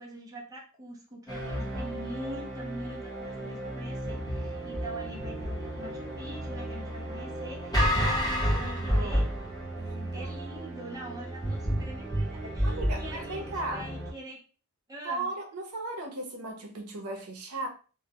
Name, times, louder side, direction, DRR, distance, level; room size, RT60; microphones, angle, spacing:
voice 1, 0.0-9.3 10.1-14.4 14.9-15.3, right 1 dB, 15° right, 0.5 m, -43 dB
sound 1, 1.3-14.1, equal, 15° left, 0.9 m, -31 dB
voice 2, 7.7-9.2 9.7-10.4 12.6-13.9 15.0-17.7, right 2 dB, 85° right, 0.6 m, -37 dB
2.1 x 2.1 x 2.7 m
head